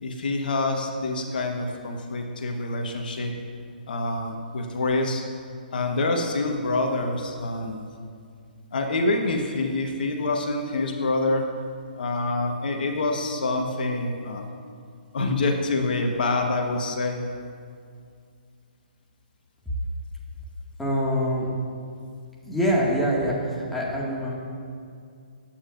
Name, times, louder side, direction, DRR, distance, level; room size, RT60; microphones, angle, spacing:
voice 1, 0.0-3.3 3.9-5.2 5.7-7.9 8.7-11.5 11.9-14.5 15.1-17.2, left 2 dB, 65° left, 3 dB, 1.4 m, -26 dB
voice 2, 20.8-21.5 22.4-24.4, equal, 5° left, -5 dB, 2.0 m, -25 dB
20.5 x 8.8 x 2.6 m, 2.3 s
hypercardioid pair, 140°, 5 cm